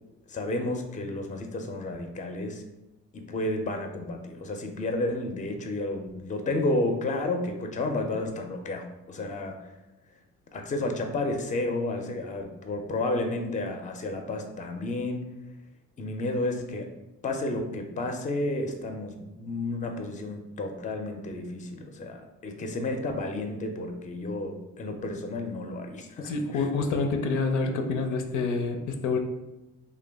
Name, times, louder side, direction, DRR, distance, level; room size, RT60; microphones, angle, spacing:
voice 1, 0.3-2.6 3.1-9.7 10.5-15.3 16.0-16.9 17.2-26.7, left 2 dB, 25° left, 5 dB, 0.5 m, -31 dB
voice 2, 26.2-29.2, left 4 dB, 80° left, 5 dB, 0.5 m, -27 dB
3.0 x 2.2 x 3.4 m, 1.0 s
cardioid pair, 90°, 30 cm